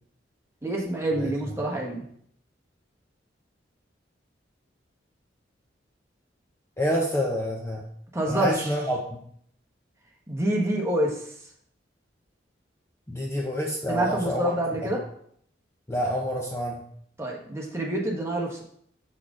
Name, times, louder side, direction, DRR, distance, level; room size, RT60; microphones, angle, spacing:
voice 1, 0.6-2.0 8.1-8.7 10.3-11.3 13.9-15.0 17.2-18.6, right 1 dB, 15° right, -1 dB, 1.2 m, -27 dB
voice 2, 6.8-7.8 8.3-9.2 13.1-14.5 14.8-14.9 15.9-16.8, equal, 15° left, -1 dB, 0.7 m, -28 dB
6.4 x 5.9 x 3.7 m, 0.66 s
head